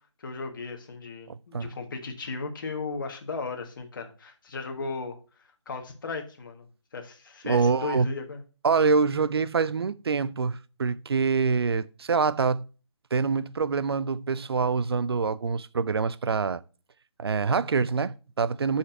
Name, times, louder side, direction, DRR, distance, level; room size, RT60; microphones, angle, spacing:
voice 1, 0.2-5.2 5.6-8.4, left 4 dB, 45° left, 1.6 m, -36 dB
voice 2, 1.3-1.7 7.4-8.1 8.6-12.7 13.1-16.6 17.2-18.8, right 5 dB, 55° right, 0.5 m, -25 dB
6.4 x 5.7 x 5.8 m
figure-of-eight pair, 160°, 16 cm